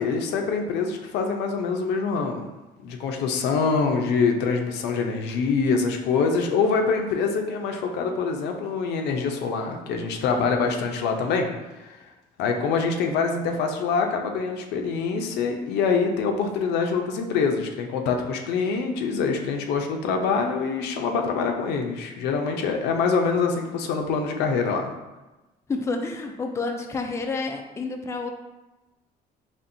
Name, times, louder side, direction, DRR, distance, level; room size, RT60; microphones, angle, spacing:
voice 1, 0.0-2.5 2.8-11.5 12.4-24.9, left 5 dB, 85° left, 3 dB, 0.6 m, -25 dB
voice 2, 25.7-28.3, left 3 dB, 15° left, 3 dB, 0.4 m, -29 dB
4.3 x 3.1 x 2.6 m, 1.1 s
cardioid pair, 110°, 17 cm